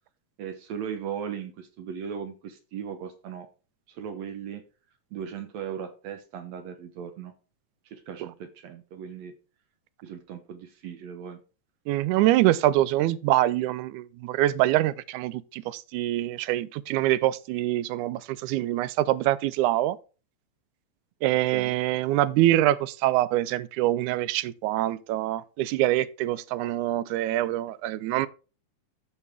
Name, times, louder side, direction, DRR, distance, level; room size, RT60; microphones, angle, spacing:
voice 1, 0.4-3.5 3.9-4.6 5.1-7.3 7.9-9.3 10.0-11.4 21.5-21.8, right 8 dB, 70° right, 2.0 m, -37 dB
voice 2, 11.9-20.0 21.2-28.3, right 15 dB, 85° right, 2.0 m, -25 dB
13.5 x 4.7 x 3.4 m
omnidirectional pair, 3.4 m